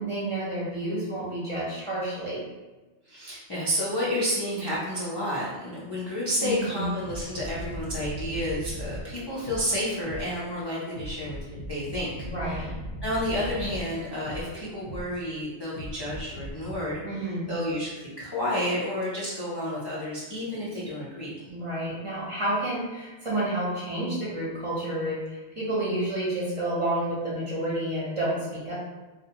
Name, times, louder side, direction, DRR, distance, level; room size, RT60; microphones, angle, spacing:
voice 1, 0.0-2.4 6.4-6.9 12.2-12.7 17.0-17.5 21.5-28.7, right 1 dB, 35° right, -8 dB, 0.6 m, -30 dB
voice 2, 3.1-12.1 12.4-12.7 13.0-21.3, left 1 dB, 45° left, -9 dB, 0.3 m, -30 dB
sound 1, 7.1-10.4 11.0-15.2 15.8-16.8, equal, 75° left, 0.9 m, -38 dB
2.6 x 2.0 x 2.7 m, 1.2 s
omnidirectional pair, 1.2 m